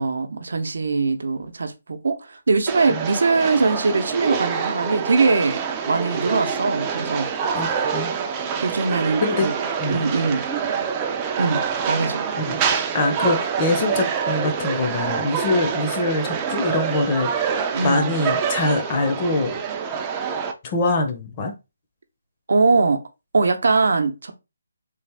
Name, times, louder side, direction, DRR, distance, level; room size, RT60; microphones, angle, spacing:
voice 1, 0.0-5.6 5.9-7.3 8.6-9.5 9.9-10.4 11.4-12.3 17.7-18.2 22.5-23.0 23.3-24.3, right 4 dB, 70° right, 0.7 m, -21 dB
sound 1, 2.7-20.5, right 6 dB, 15° right, 0.4 m, -26 dB
voice 2, 7.5-8.1 9.2-9.5 9.8-10.0 12.4-12.6 12.9-17.3 17.8-19.6 20.6-21.5, left 2 dB, 25° left, 0.7 m, -23 dB
3.3 x 2.4 x 3.4 m
hypercardioid pair, 165°, 0 cm